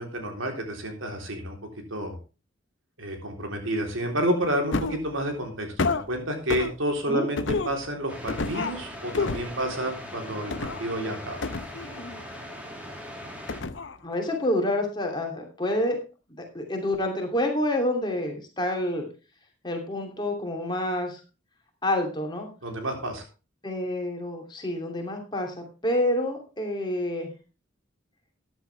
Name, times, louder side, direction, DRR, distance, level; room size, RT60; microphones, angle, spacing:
voice 1, 0.0-1.6 1.9-2.2 3.0-11.5 22.6-23.2, right 1 dB, 80° right, 3 dB, 3.6 m, -30 dB
sound 1, 4.7-5.1 5.8-6.0 6.5-6.7 7.4-7.8 8.3-8.8 9.1-9.5 10.5-10.8 11.4-12.2 13.5-14.0 14.3-14.4, left 3 dB, 65° left, 0.8 m, -29 dB
sound 2, 8.1-13.6, equal, 5° right, 2.5 m, -40 dB
voice 2, 14.0-16.0 16.4-19.1 19.6-21.2 21.8-22.5 23.6-25.5 25.8-27.3, left 1 dB, 20° left, 2 dB, 2.8 m, -28 dB
14.0 x 10.0 x 3.4 m, 0.32 s
head